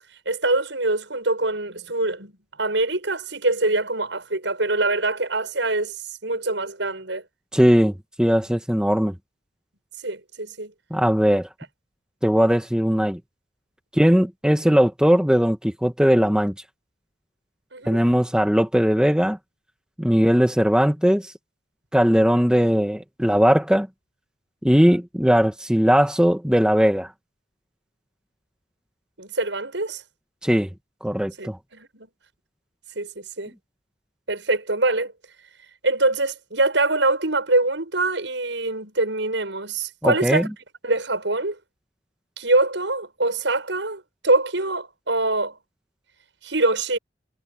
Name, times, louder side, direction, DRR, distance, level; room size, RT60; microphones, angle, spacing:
voice 1, 0.3-7.2 10.0-10.7 17.7-18.0 29.2-30.0 31.4-32.1 33.0-33.5 34.3-35.1 35.8-40.5 40.8-41.6 42.4-45.6 46.4-47.0, right 2 dB, 80° right, 7.2 m, -24 dB
voice 2, 7.5-9.1 10.9-11.5 12.2-13.2 13.9-16.5 17.9-19.4 20.0-21.2 21.9-23.9 24.6-27.1 30.4-30.7 31.0-31.6 40.0-40.5, equal, 5° right, 1.7 m, -19 dB
head